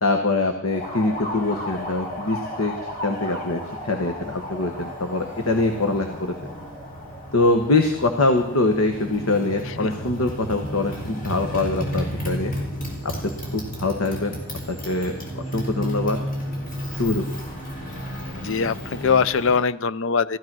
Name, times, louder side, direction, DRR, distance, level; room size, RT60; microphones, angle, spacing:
voice 1, 0.0-2.7 3.0-6.3 7.3-12.5 13.0-14.4 14.7-16.2 16.9-17.4, left 2 dB, 75° left, 5 dB, 1.3 m, -24 dB
Motorcycle, 0.6-19.6, equal, 40° left, 3.9 m, -33 dB
voice 2, 18.4-20.4, left 5 dB, 60° left, 17 dB, 0.5 m, -22 dB
15.0 x 13.0 x 6.2 m, 0.84 s
head